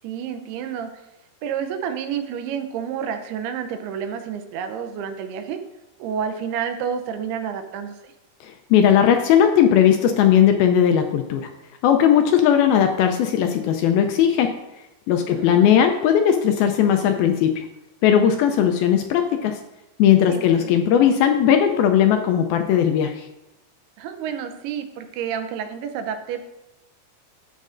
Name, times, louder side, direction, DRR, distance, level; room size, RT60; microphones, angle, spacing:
voice 1, 0.0-0.9 1.4-5.6 6.0-8.0 15.3-15.8 20.3-20.8 24.0-26.5, right 8 dB, 80° right, 7 dB, 2.6 m, -29 dB
voice 2, 8.7-11.5 11.8-14.5 15.1-17.6 18.0-19.6 20.0-23.2, left 9 dB, 80° left, 5 dB, 2.2 m, -17 dB
12.0 x 8.4 x 2.5 m, 0.93 s
omnidirectional pair, 4.7 m